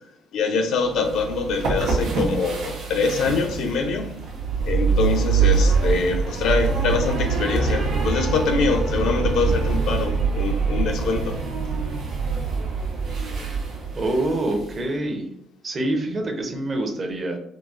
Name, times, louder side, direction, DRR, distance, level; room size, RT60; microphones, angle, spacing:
voice 1, 0.3-4.1 4.7-11.5, left 4 dB, 70° left, 0.4 m, -24 dB
sound 1, 0.9-14.8, right 5 dB, 80° right, 0.8 m, -24 dB
voice 2, 13.9-15.3 15.6-17.4, right 1 dB, 35° right, 0.6 m, -25 dB
3.8 x 2.1 x 2.4 m
cardioid pair, 110°, 0 cm